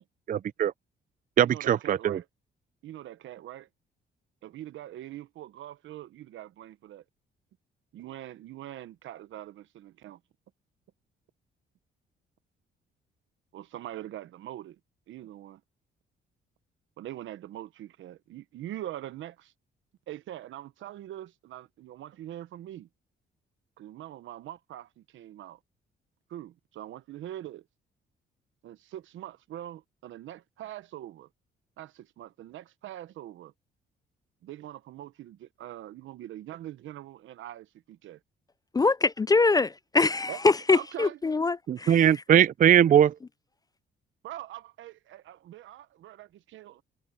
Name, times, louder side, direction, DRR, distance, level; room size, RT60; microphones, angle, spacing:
voice 1, 0.3-0.7 1.4-2.2 41.7-43.1, right 10 dB, 45° right, 0.4 m, -21 dB
voice 2, 1.4-2.3 2.8-3.7 4.4-7.0 7.9-10.2 13.5-14.8 15.1-15.6 17.0-19.5 20.1-22.9 23.8-25.6 26.3-27.6 28.6-31.3 31.8-33.5 34.4-38.2 40.3-41.2 44.2-46.8, right 13 dB, 80° right, 1.0 m, -43 dB
voice 3, 38.7-42.0, left 3 dB, 20° left, 0.3 m, -24 dB
cardioid pair, 90°, 20 cm